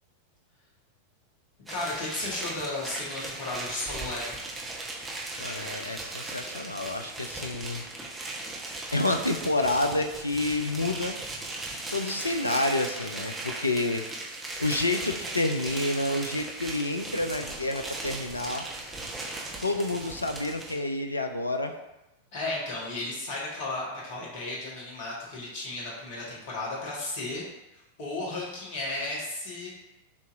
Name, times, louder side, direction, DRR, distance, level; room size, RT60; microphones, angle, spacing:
voice 1, 1.7-4.4 22.3-27.4 27.7-29.7, left 2 dB, 50° left, -4 dB, 1.5 m, -34 dB
sound 1, 1.7-20.8, right 2 dB, 10° right, 1.0 m, -38 dB
voice 2, 5.4-7.8 8.9-11.2 11.9-14.0 14.6-18.7 19.6-21.8, left 2 dB, 80° left, 5 dB, 0.4 m, -29 dB
7.0 x 2.9 x 2.6 m, 0.94 s
figure-of-eight pair, 90°, 0 cm